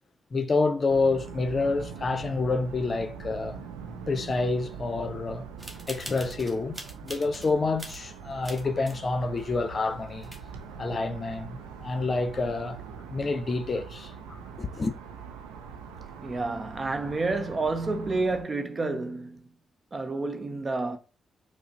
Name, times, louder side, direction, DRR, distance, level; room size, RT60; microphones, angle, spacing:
voice 1, 0.3-3.6 4.1-5.5 5.9-10.3 10.8-12.8 13.1-15.0, left 3 dB, 45° left, 0.5 m, -28 dB
sound 1, 0.9-18.4, right 6 dB, 90° right, 0.4 m, -43 dB
sound 2, 5.6-7.5 7.8-9.0 9.4-9.5 9.9-10.0 10.2-10.7, right 1 dB, 15° right, 1.0 m, -43 dB
voice 2, 16.2-19.5 19.9-21.0, right 3 dB, 40° right, 0.7 m, -29 dB
4.8 x 2.0 x 2.9 m
hypercardioid pair, 45°, 0 cm